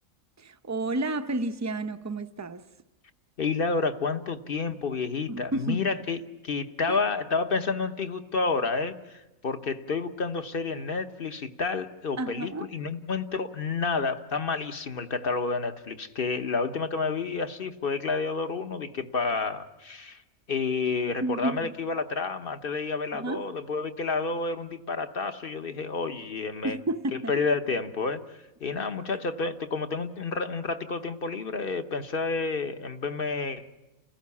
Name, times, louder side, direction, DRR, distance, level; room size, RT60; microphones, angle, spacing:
voice 1, 0.4-2.7 5.3-5.9 6.9-7.0 12.2-12.7 21.2-21.7 23.1-23.5 26.6-27.3, right 2 dB, 15° right, 0.6 m, -31 dB
voice 2, 3.4-6.2 6.4-20.2 20.5-26.8 27.1-28.2 28.6-33.7, left 4 dB, 45° left, 1.1 m, -30 dB
29.5 x 16.0 x 8.4 m
omnidirectional pair, 1.5 m